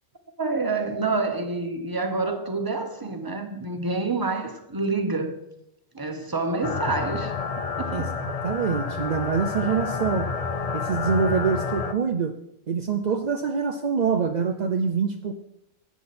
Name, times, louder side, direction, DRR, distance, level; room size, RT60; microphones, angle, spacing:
voice 1, 0.4-5.4 5.9-7.3 7.8-8.1, right 3 dB, 15° right, 0.9 m, -27 dB
sound 1, 6.6-11.9, left 5 dB, 65° left, 0.3 m, -29 dB
voice 2, 7.9-10.3 10.7-12.3 12.7-15.4, right 6 dB, 55° right, 0.5 m, -25 dB
12.0 x 8.7 x 4.3 m
omnidirectional pair, 1.5 m